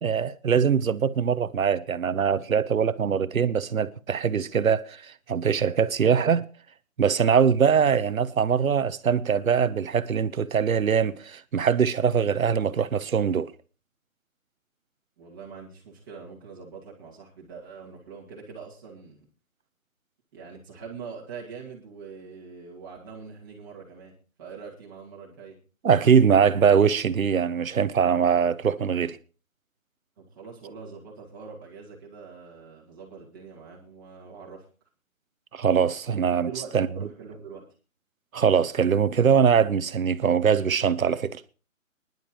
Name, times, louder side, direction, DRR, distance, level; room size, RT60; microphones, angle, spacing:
voice 1, 0.0-6.4 7.0-13.5 25.8-29.2 35.5-36.9 38.3-41.4, right 7 dB, 80° right, 1.0 m, -22 dB
voice 2, 15.2-19.3 20.3-24.1 24.4-25.6 30.2-34.7 36.0-37.7, right 5 dB, 15° right, 2.3 m, -43 dB
22.0 x 11.0 x 3.1 m
hypercardioid pair, 175°, 41 cm